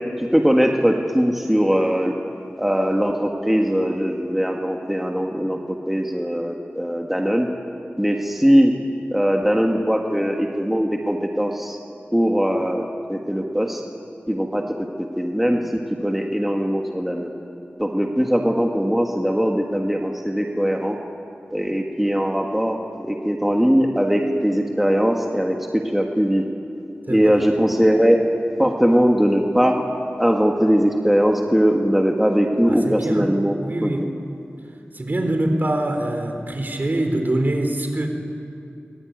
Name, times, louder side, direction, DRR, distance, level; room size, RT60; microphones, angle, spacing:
voice 1, 0.2-2.1 2.6-7.5 8.0-8.7 9.1-11.8 12.1-12.8 13.1-13.8 14.3-14.9 15.2-17.3 17.8-21.0 21.5-26.5 27.1-28.2 28.6-29.8 30.2-33.5 33.8-34.1, equal, 5° right, 1 dB, 1.9 m, -20 dB
voice 2, 27.1-27.4 32.7-33.3 33.6-34.0 34.9-38.1, right 1 dB, 45° right, 4 dB, 3.7 m, -24 dB
23.5 x 21.5 x 9.5 m, 2.5 s
wide cardioid pair, 75°, 4 cm